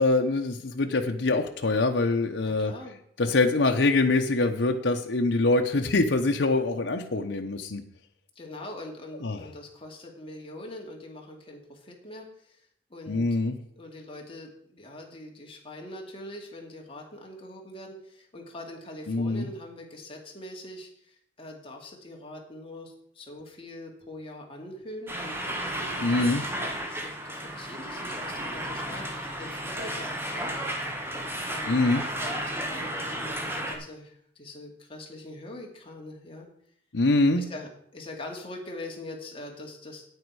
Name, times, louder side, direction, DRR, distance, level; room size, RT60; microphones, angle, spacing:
voice 1, 0.0-2.7 3.2-7.8 9.2-9.4 13.1-13.5 19.1-19.5 26.0-26.4 31.7-32.0 36.9-37.4, left 2 dB, 90° left, 3 dB, 0.9 m, -24 dB
voice 2, 2.4-3.4 8.4-13.3 13.8-25.4 25.8-26.3 26.9-30.7 31.5-31.8 32.2-36.5 37.4-40.0, left 1 dB, 30° left, 0 dB, 2.4 m, -43 dB
sound 1, 25.1-33.8, right 1 dB, 15° right, 1.3 m, -33 dB
9.5 x 9.1 x 4.8 m, 0.66 s
head